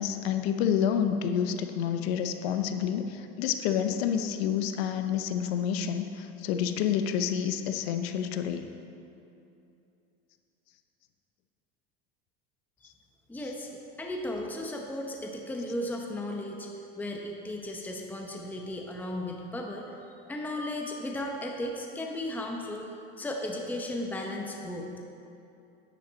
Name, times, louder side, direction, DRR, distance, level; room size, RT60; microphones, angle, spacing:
voice 1, 0.0-8.7, left 8 dB, 80° left, 8 dB, 0.8 m, -29 dB
voice 2, 13.3-13.7 14.0-16.7 17.0-19.9 20.3-22.9 23.2-24.9, left 1 dB, 5° left, 1 dB, 0.8 m, -35 dB
9.9 x 8.7 x 4.0 m, 2.7 s
supercardioid pair, 115°, 30 cm